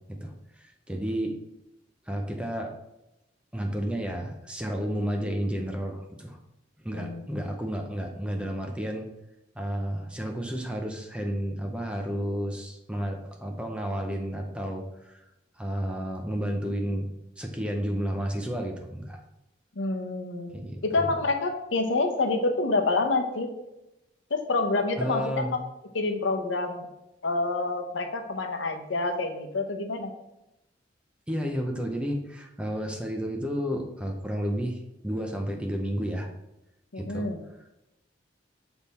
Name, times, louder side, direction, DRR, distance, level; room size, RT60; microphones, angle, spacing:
voice 1, 0.1-1.4 2.1-2.7 3.5-6.4 6.8-9.1 9.5-15.2 15.6-17.1 17.4-19.2 20.5-21.1 25.0-25.5 31.3-36.3 37.0-37.3, equal, 5° right, 2 dB, 0.6 m, -31 dB
voice 2, 19.8-20.5 20.8-23.5 24.3-25.6 25.9-26.9 27.2-30.1 36.9-37.4, left 3 dB, 80° left, 5 dB, 0.8 m, -27 dB
6.4 x 3.5 x 4.2 m, 0.91 s
head